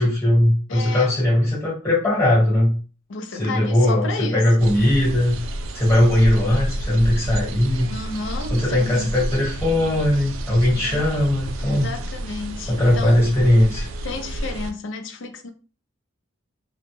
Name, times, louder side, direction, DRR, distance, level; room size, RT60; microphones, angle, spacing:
voice 1, 0.0-2.8 3.3-5.4 5.7-7.9 8.5-11.9 12.7-13.9, left 1 dB, 15° left, 1.2 m, -19 dB
voice 2, 0.7-1.1 3.1-4.4 7.9-9.1 10.7-11.1 11.6-13.2 14.0-15.5, left 3 dB, 65° left, 0.4 m, -32 dB
sound 1, 4.6-14.7, right 1 dB, 75° right, 0.3 m, -30 dB
2.1 x 2.1 x 3.0 m
head